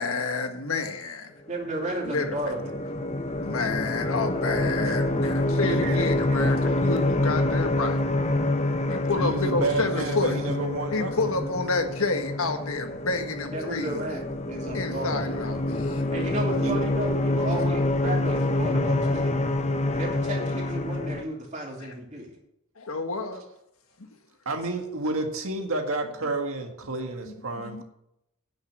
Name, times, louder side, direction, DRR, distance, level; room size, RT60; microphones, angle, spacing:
voice 1, 0.0-1.3 2.0-2.4 3.4-8.0 8.9-10.3 10.9-14.1 14.7-16.1 22.8-23.4 27.3-27.8, left 3 dB, 75° left, 6 dB, 1.5 m, -29 dB
voice 2, 1.5-2.8 13.5-14.2 14.5-15.4 16.1-19.3 19.9-22.3, right 1 dB, 30° right, -1 dB, 2.9 m, -33 dB
sound 1, 1.8-21.2, left 1 dB, 30° left, 0.7 m, -27 dB
voice 3, 5.6-6.0 9.2-11.1 16.6-16.8 24.5-27.8, right 2 dB, 70° right, 4 dB, 1.8 m, -30 dB
9.9 x 6.7 x 8.7 m, 0.81 s
head